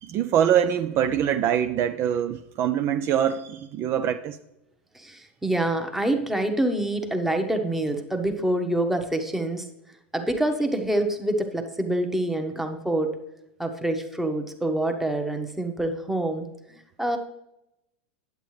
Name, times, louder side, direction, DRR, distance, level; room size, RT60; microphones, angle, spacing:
voice 1, 0.0-4.4, right 9 dB, 45° right, 0.4 m, -24 dB
voice 2, 4.9-9.7 10.1-13.1 13.6-16.5 16.7-17.2, right 1 dB, 5° right, 1.0 m, -26 dB
8.4 x 8.1 x 3.2 m
hypercardioid pair, 105°, 6 cm